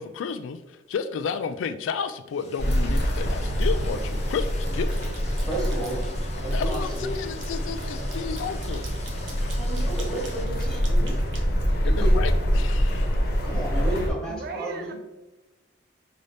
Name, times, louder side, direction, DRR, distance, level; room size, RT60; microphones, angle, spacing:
voice 1, 0.0-5.0 6.5-8.8 11.8-13.2, left 6 dB, 90° left, 0.3 m, -32 dB
Liquid, 2.3-10.4, left 2 dB, 35° left, 0.6 m, -45 dB
sound 1, 2.6-14.1, equal, 55° left, 1.0 m, -25 dB
sound 2, 3.6-4.1 4.5-6.1 6.5-12.3, right 2 dB, 85° right, 1.0 m, -46 dB
voice 2, 5.5-6.0 6.4-7.1 9.6-11.2 11.7-12.2 13.4-14.9, right 2 dB, 5° left, 1.2 m, -32 dB
voice 3, 14.2-14.9, right 4 dB, 55° right, 0.4 m, -37 dB
5.1 x 2.7 x 3.3 m
head